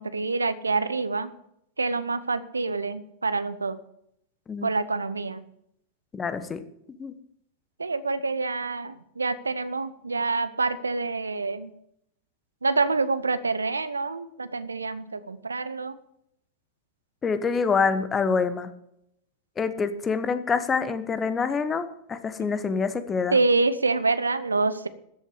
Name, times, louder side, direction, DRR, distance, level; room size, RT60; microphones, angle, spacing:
voice 1, 0.0-1.3 1.8-3.8 4.6-5.4 7.8-11.7 12.6-15.9 22.4-22.5 23.3-24.9, right 3 dB, 80° right, 13 dB, 0.8 m, -26 dB
voice 2, 6.1-6.6 7.0-7.1 17.2-18.7 19.6-23.4, left 5 dB, 20° left, 12 dB, 1.2 m, -26 dB
13.5 x 8.4 x 8.2 m, 0.76 s
figure-of-eight pair, 90°, 0 cm